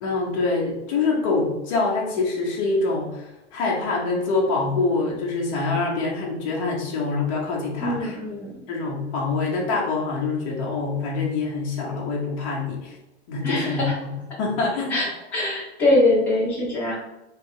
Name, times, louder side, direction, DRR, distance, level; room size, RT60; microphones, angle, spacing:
voice 1, 0.0-8.2 8.7-13.0 13.3-14.1 14.4-15.0, left 3 dB, 30° left, -3 dB, 1.1 m, -25 dB
voice 2, 7.8-8.5 13.4-13.9 14.9-17.0, left 2 dB, 5° left, -7 dB, 0.4 m, -23 dB
3.3 x 3.3 x 4.8 m, 0.90 s
supercardioid pair, 180°, 34 cm